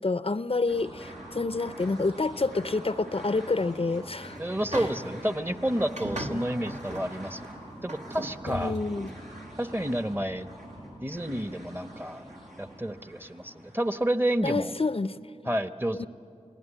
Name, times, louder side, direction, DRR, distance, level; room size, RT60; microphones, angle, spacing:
voice 1, 0.0-4.4 4.7-4.9 6.0-6.4 8.5-9.1 14.4-15.3 15.9-16.1, left 3 dB, 50° left, 14 dB, 0.5 m, -29 dB
sound 1, 0.7-14.4, right 1 dB, 80° right, 7.2 m, -45 dB
sound 2, 4.1-5.3 5.8-7.1 7.4-7.5 7.9-9.1, right 1 dB, 65° right, 1.7 m, -38 dB
voice 2, 4.4-7.4 7.8-8.7 9.6-10.5 11.0-12.2 12.6-14.7 15.5-16.1, right 1 dB, 15° right, 10 dB, 1.0 m, -30 dB
28.0 x 18.5 x 10.0 m, 2.5 s
wide cardioid pair, 40°, 13 cm